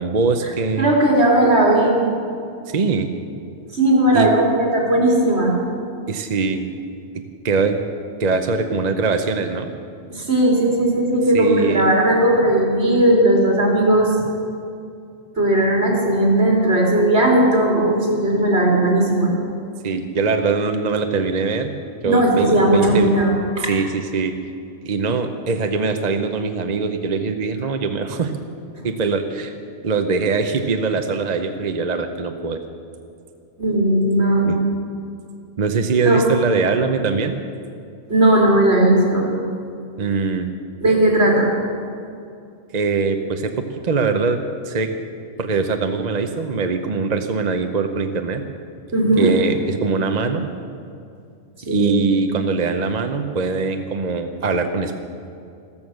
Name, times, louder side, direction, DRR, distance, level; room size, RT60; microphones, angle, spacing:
voice 1, 0.0-0.9 2.7-3.1 4.1-4.3 6.1-6.7 7.4-7.8 8.2-9.7 11.3-11.9 19.8-21.7 22.0-23.1 23.6-24.4 24.8-28.3 28.8-29.5 29.8-32.6 34.5-34.6 35.6-37.4 40.0-40.5 42.7-44.4 44.6-44.9 45.4-48.4 49.2-50.5 51.6-55.0, right 4 dB, 40° right, 6 dB, 0.8 m, -22 dB
voice 2, 0.8-2.0 3.7-5.5 10.1-14.1 15.4-19.3 22.0-23.7 28.8-28.9 33.6-34.5 36.0-36.2 38.1-39.3 40.8-41.5 48.9-49.3 51.7-52.0, right 1 dB, 60° right, -2 dB, 3.6 m, -17 dB
14.5 x 14.0 x 6.4 m, 2.5 s
omnidirectional pair, 1.3 m